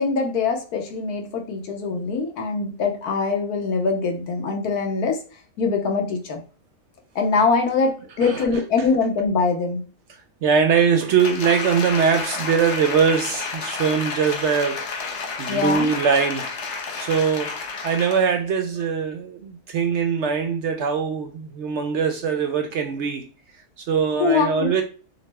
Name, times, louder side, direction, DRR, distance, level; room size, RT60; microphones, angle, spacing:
voice 1, 0.0-5.2 5.6-6.4 7.1-9.8 15.5-15.9 24.2-24.7, left 4 dB, 85° left, 1.5 m, -23 dB
voice 2, 10.4-14.9 15.4-16.5 16.9-17.6 17.8-23.3 23.8-24.8, right 6 dB, 65° right, 0.7 m, -22 dB
Applause, 11.2-18.3 18.8-18.9, left 4 dB, 55° left, 1.0 m, -31 dB
6.2 x 2.2 x 3.4 m
omnidirectional pair, 1.6 m